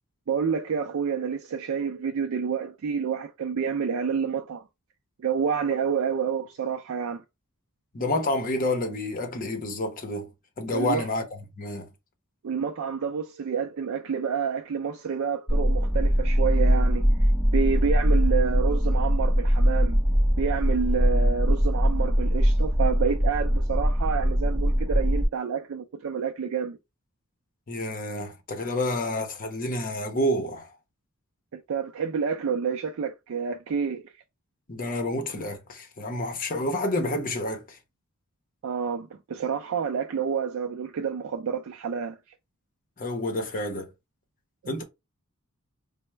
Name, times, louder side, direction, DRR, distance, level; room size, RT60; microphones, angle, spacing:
voice 1, 0.3-4.6 5.2-7.2 10.7-11.1 12.4-17.1 17.5-20.0 20.4-26.8 31.5-34.1 38.6-42.2 44.6-44.8, right 6 dB, 70° right, 0.4 m, -29 dB
voice 2, 7.9-10.3 10.6-11.2 11.6-11.9 27.7-30.7 34.7-37.8 43.0-43.9 44.7-44.8, left 1 dB, 40° left, 0.8 m, -29 dB
sound 1, 15.5-25.3, equal, 5° left, 1.5 m, -22 dB
4.3 x 2.1 x 3.2 m
head